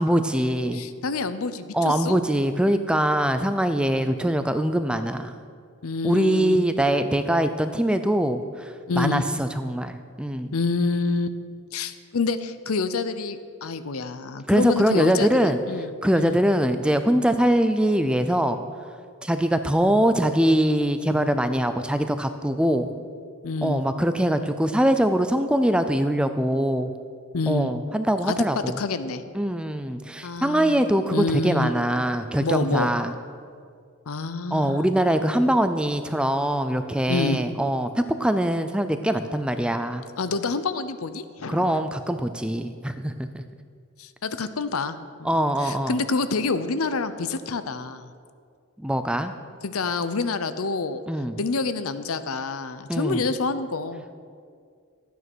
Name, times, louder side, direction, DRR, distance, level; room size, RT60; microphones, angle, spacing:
voice 1, 0.0-0.9 1.7-5.3 6.0-10.5 14.5-15.6 16.0-18.6 19.2-22.9 23.6-26.9 27.5-28.8 29.3-33.1 34.5-40.0 41.5-43.4 45.2-46.0 48.8-49.3 51.1-51.4 52.9-53.2, right 1 dB, 5° right, 9 dB, 0.4 m, -23 dB
voice 2, 0.7-2.2 3.1-3.3 5.8-6.6 8.9-9.2 10.5-11.4 11.7-16.4 23.4-23.8 27.3-27.7 28.3-29.2 30.2-30.8 31.1-31.7 32.4-32.9 34.1-34.8 37.1-37.4 40.2-41.9 44.0-48.1 49.6-51.0 51.4-54.0, left 3 dB, 75° left, 12 dB, 0.7 m, -27 dB
13.0 x 9.3 x 6.2 m, 2.2 s
head